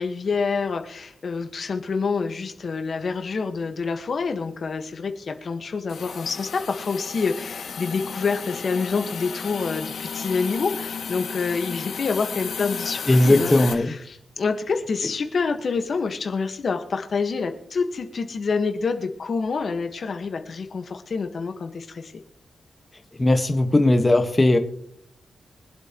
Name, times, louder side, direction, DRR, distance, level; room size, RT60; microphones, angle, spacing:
voice 1, 0.0-22.1, left 4 dB, 55° left, 6 dB, 1.4 m, -27 dB
Hiss, 5.9-13.7, left 6 dB, 75° left, 2.1 m, -33 dB
voice 2, 13.1-13.9 23.2-24.6, left 1 dB, 25° left, 5 dB, 1.4 m, -18 dB
24.5 x 8.2 x 3.0 m, 0.68 s
cardioid pair, 80°, 0 cm